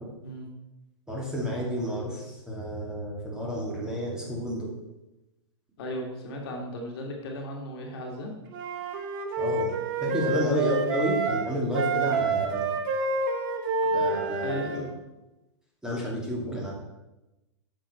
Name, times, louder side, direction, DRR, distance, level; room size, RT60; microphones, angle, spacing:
voice 1, 1.1-4.7 9.4-9.7 10.0-12.7 13.9-14.8 15.8-16.7, equal, 5° right, -4 dB, 2.4 m, -30 dB
voice 2, 5.8-8.3 10.2-10.4 14.4-14.9, left 1 dB, 50° left, 0 dB, 2.0 m, -36 dB
Wind instrument woodwind instrument, 8.5-11.4 11.7-14.9, right 3 dB, 45° right, 1.2 m, -28 dB
8.9 x 6.6 x 4.3 m, 1.0 s
figure-of-eight pair, 105°, 16 cm